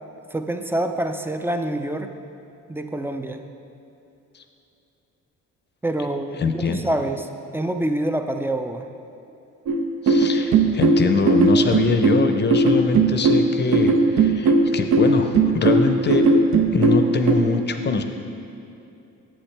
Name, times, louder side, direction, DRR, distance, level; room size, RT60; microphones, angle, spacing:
voice 1, 0.3-2.1 2.7-3.4 5.8-7.3 7.5-8.9, right 1 dB, 10° right, 6 dB, 0.4 m, -26 dB
voice 2, 6.4-6.8 10.0-16.2 16.7-18.0, left 4 dB, 35° left, 6 dB, 0.7 m, -23 dB
sound 1, 9.7-17.3, right 3 dB, 70° right, 0.7 m, -17 dB
8.8 x 7.6 x 3.3 m, 2.8 s
cardioid pair, 90°, 30 cm